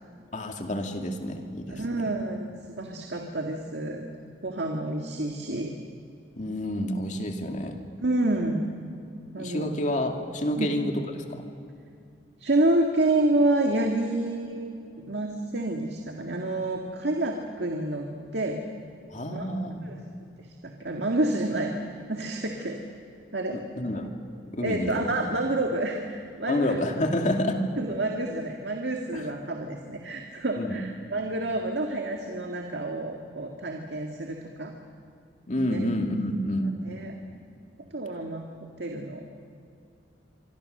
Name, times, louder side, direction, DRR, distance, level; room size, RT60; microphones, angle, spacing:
voice 1, 0.3-2.1 6.4-7.8 9.4-11.4 19.1-20.0 23.5-24.1 24.5-25.1 26.5-27.6 29.1-29.3 30.6-30.8 35.5-36.7, left 1 dB, 45° left, 3 dB, 2.4 m, -29 dB
voice 2, 1.7-4.0 4.4-5.7 8.0-8.6 9.3-9.7 10.6-10.7 12.4-18.6 19.3-19.5 19.8-19.9 20.6-21.7 22.1-22.8 23.3-23.6 24.6-26.8 27.8-34.7 35.7-35.8 36.9-37.1 37.9-38.5 38.8-39.2, right 2 dB, 70° right, 2 dB, 2.0 m, -28 dB
25.5 x 24.5 x 6.7 m, 2.5 s
head